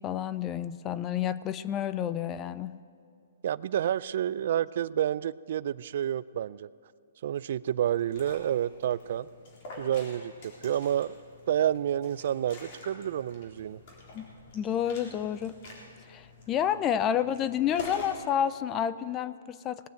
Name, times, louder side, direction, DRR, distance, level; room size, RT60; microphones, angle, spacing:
voice 1, 0.0-2.8 14.1-14.3 14.5-15.5 16.1-19.9, left 9 dB, 20° left, 15 dB, 0.4 m, -30 dB
voice 2, 3.4-6.7 7.2-9.3 9.8-11.1 11.5-13.8, right 10 dB, 50° right, 19 dB, 0.3 m, -29 dB
Liquid, 7.9-18.2, left 2 dB, 40° left, 3.8 m, -47 dB
19.0 x 9.4 x 7.8 m, 2.5 s
hypercardioid pair, 160°, 0 cm